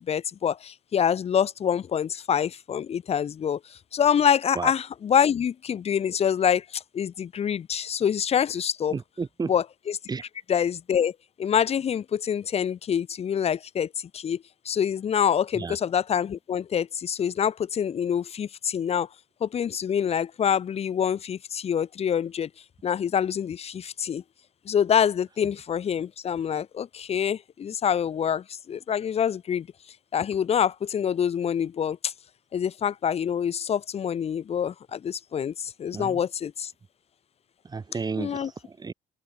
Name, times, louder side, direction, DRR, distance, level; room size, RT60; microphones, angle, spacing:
voice 1, 0.0-9.0 9.5-10.0 10.5-11.1 11.4-19.1 19.4-22.5 22.8-24.2 24.7-29.7 30.1-32.1 32.5-36.7 38.2-38.5, left 8 dB, 40° left, 0.8 m, -26 dB
voice 2, 8.9-9.5 10.1-10.2 15.5-15.8 35.9-36.2 37.6-38.9, right 4 dB, 25° right, 1.6 m, -32 dB
cardioid pair, 110°, 17 cm